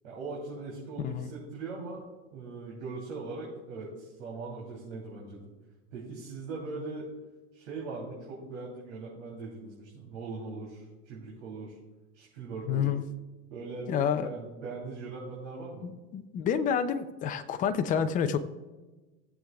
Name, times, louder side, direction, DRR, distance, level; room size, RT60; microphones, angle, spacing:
voice 1, 0.0-2.0 2.3-5.5 5.9-7.1 7.5-11.8 12.1-12.9 13.5-13.9 14.2-15.8, right 3 dB, 70° right, -5 dB, 3.2 m, -40 dB
voice 2, 1.0-1.3 12.7-13.0 13.9-14.3 15.8-18.4, left 7 dB, 20° left, 9 dB, 0.5 m, -29 dB
18.0 x 7.6 x 2.3 m, 1.2 s
supercardioid pair, 140°, 38 cm